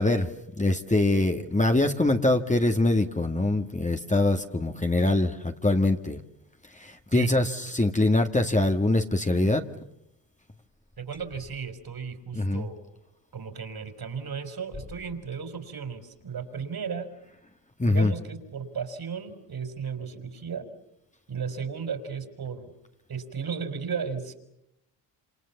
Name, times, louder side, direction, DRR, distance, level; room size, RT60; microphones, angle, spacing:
voice 1, 0.0-6.2 6.7-9.7 12.3-12.6 17.8-18.1, left 2 dB, 15° left, 5 dB, 1.9 m, -24 dB
voice 2, 11.0-12.8 13.3-17.1 17.8-20.7 21.3-22.7 23.1-24.3, right 6 dB, 50° right, 9 dB, 4.7 m, -35 dB
27.5 x 27.5 x 7.2 m, 0.81 s
supercardioid pair, 60°, 47 cm